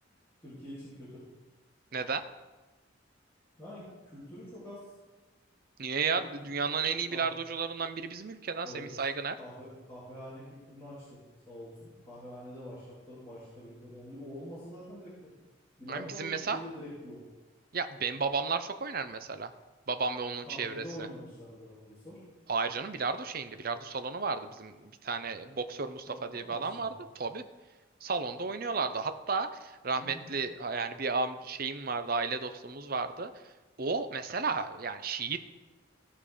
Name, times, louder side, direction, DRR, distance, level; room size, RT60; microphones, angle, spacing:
voice 1, 0.4-1.3 3.6-4.9 6.1-6.5 6.9-7.3 8.6-8.9 9.4-15.3 15.8-17.2 20.5-22.2 26.1-26.9 29.9-30.2, equal, 15° left, -12 dB, 3.2 m, -46 dB
voice 2, 1.9-2.3 5.8-9.4 15.9-16.6 17.7-19.5 19.9-21.1 22.5-27.4 28.0-33.3 33.8-35.4, right 4 dB, 50° right, 9 dB, 0.6 m, -33 dB
16.0 x 5.3 x 5.0 m, 1.2 s
head